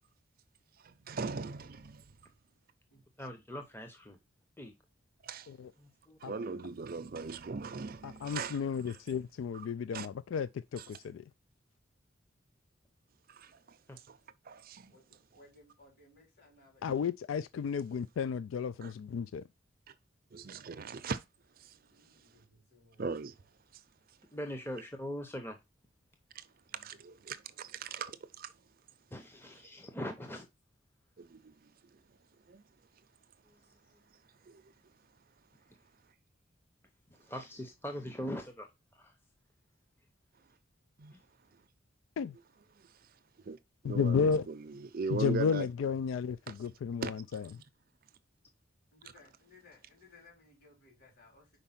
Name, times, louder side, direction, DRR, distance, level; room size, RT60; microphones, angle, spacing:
voice 1, 0.9-2.0 5.2-5.5 6.2-9.0 9.5-9.7 9.9-10.1 10.8-10.9 13.3-13.8 14.1-14.2 14.4-14.9 18.8-18.9 19.9-20.0 20.3-21.2 21.6-21.8 23.0-23.3 26.3-26.5 26.7-28.5 31.2-31.7 32.5-32.6 34.5-34.7 41.0-41.1 42.8-42.9 43.4-43.6 43.8-45.7 46.5-46.6 47.0-47.4, right 4 dB, 50° right, 0.5 m, -40 dB
voice 2, 3.2-4.2 4.6-4.7 5.8-6.2 13.9-14.0 24.3-25.6 29.1-30.5 33.5-34.0 37.2-38.7 38.9-39.1 41.1-41.2, equal, 10° left, 0.7 m, -42 dB
voice 3, 8.0-11.2 16.8-19.4 42.2-42.3 43.8-44.5 45.1-47.4, left 6 dB, 80° left, 0.3 m, -33 dB
voice 4, 14.9-17.0 21.9-23.0 26.6-27.0 48.9-51.5, left 3 dB, 55° left, 4.0 m, -61 dB
5.2 x 4.5 x 5.7 m
head